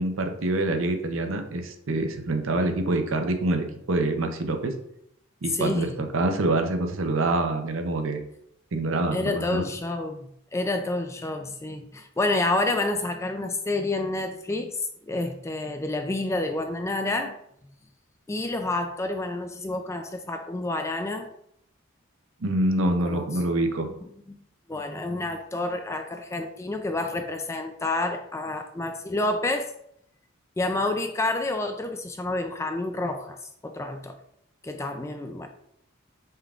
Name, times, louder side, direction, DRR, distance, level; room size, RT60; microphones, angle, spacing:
voice 1, 0.0-4.7 5.4-8.2 8.7-9.6 22.4-23.9, right 2 dB, 70° right, 6 dB, 0.6 m, -26 dB
voice 2, 5.5-6.0 9.1-14.8 15.1-17.4 18.3-21.3 23.0-23.6 24.3-24.4 24.7-29.7 30.6-33.4 33.6-34.2 34.6-35.5, left 2 dB, 15° left, 6 dB, 0.3 m, -29 dB
5.5 x 3.5 x 2.4 m, 0.72 s
head